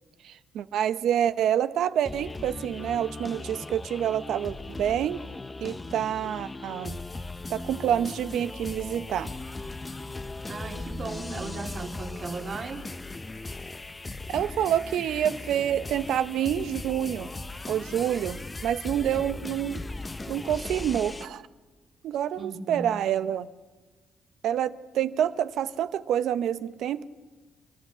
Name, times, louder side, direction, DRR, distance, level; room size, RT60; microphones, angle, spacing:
voice 1, 0.2-5.2 5.6-7.0 7.5-9.3 14.3-17.3 17.7-19.8 20.3-21.4 22.0-23.5 24.4-27.1, right 10 dB, 75° right, 14 dB, 0.7 m, -27 dB
sound 1, 2.0-21.3, left 2 dB, 20° left, 0.7 m, -38 dB
voice 2, 10.5-12.9 22.4-23.0, right 4 dB, 45° right, 4 dB, 2.2 m, -36 dB
28.5 x 12.5 x 8.1 m, 1.3 s
cardioid pair, 90°, 0 cm